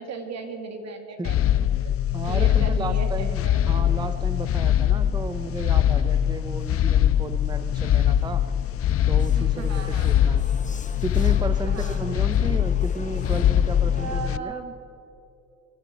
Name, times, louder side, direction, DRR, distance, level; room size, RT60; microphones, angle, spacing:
voice 1, 0.0-1.9 2.3-3.6 5.2-5.3 9.4-10.5 11.7-12.0 13.9-14.8, right 4 dB, 60° right, 6 dB, 2.3 m, -37 dB
sound 1, 1.2-14.4, left 10 dB, 50° left, 0.5 m, -22 dB
voice 2, 2.1-8.5 9.1-10.5 11.0-14.5, right 3 dB, 15° right, 11 dB, 0.7 m, -34 dB
Vehicle, 3.7-14.2, left 4 dB, 25° left, 1.1 m, -43 dB
24.0 x 8.1 x 7.4 m, 2.7 s
cardioid pair, 90°, 30 cm